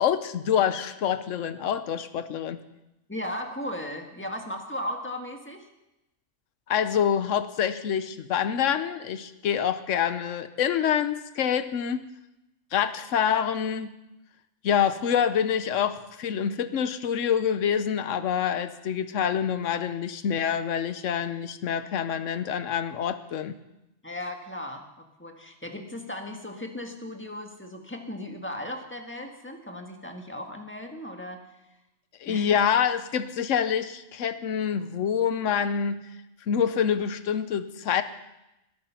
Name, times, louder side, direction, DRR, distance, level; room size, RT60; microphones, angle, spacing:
voice 1, 0.0-2.6 6.7-12.1 12.7-13.9 14.6-23.6 32.2-36.0 36.5-38.0, left 8 dB, 80° left, 11 dB, 1.2 m, -26 dB
voice 2, 3.1-5.7 24.0-31.5 32.3-32.6, left 1 dB, 10° left, 3 dB, 1.6 m, -36 dB
20.0 x 11.0 x 5.8 m, 0.93 s
omnidirectional pair, 1.3 m